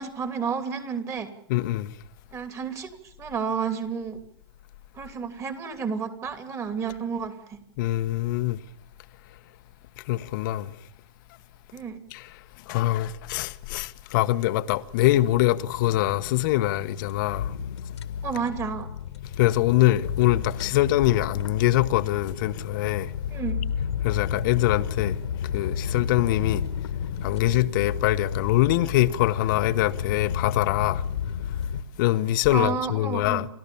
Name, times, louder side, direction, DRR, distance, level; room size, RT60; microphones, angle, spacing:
voice 1, 0.0-1.3 2.3-4.2 4.9-7.6 11.7-12.0 18.2-18.9 23.3-23.6 32.5-33.5, right 6 dB, 20° right, 2.9 m, -31 dB
voice 2, 1.5-1.9 7.8-8.6 10.1-10.7 12.1-12.2 12.7-17.5 19.4-23.1 24.0-25.1 25.5-26.6 27.2-31.0 32.0-33.5, left 15 dB, 45° left, 1.1 m, -23 dB
sound 1, 15.7-31.8, left 7 dB, 80° left, 1.8 m, -32 dB
29.5 x 13.5 x 7.0 m
hypercardioid pair, 135°, 14 cm